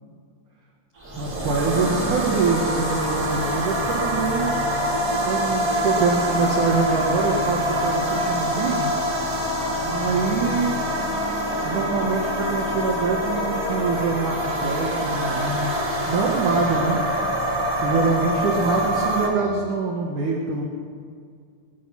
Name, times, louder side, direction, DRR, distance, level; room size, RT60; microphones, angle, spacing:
sound 1, 1.0-19.3, equal, 20° right, 2.6 m, -25 dB
voice 1, 1.2-4.5 5.2-8.9 9.8-10.7 11.6-17.0 17.8-20.7, right 4 dB, 75° right, -1 dB, 1.9 m, -25 dB
22.0 x 11.0 x 5.7 m, 2.2 s
omnidirectional pair, 5.8 m